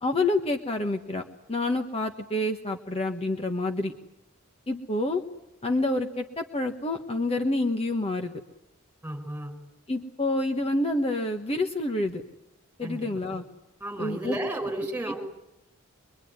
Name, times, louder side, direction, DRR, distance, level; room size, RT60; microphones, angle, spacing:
voice 1, 0.0-1.2 1.5-3.9 4.7-5.2 5.6-8.3 9.9-12.2 12.8-13.4 14.0-14.4 15.0-15.1, left 2 dB, 25° left, 4 dB, 1.3 m, -28 dB
voice 2, 9.0-9.5 12.8-13.1 13.8-15.1, right 1 dB, 5° right, 2 dB, 5.3 m, -33 dB
24.0 x 23.5 x 9.5 m, 0.88 s
head